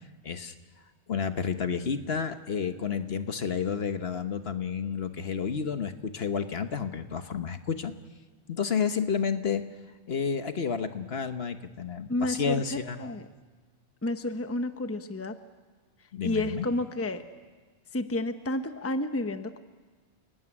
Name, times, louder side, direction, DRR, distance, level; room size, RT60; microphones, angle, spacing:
voice 1, 0.2-0.5 1.1-7.9 8.5-9.6 10.1-13.1 16.1-16.7, left 6 dB, 55° left, 8 dB, 1.3 m, -30 dB
voice 2, 12.1-13.3 14.0-15.4 16.2-17.2 17.9-19.6, left 2 dB, 15° left, 8 dB, 0.9 m, -31 dB
29.5 x 17.5 x 9.9 m, 1.4 s
omnidirectional pair, 1.2 m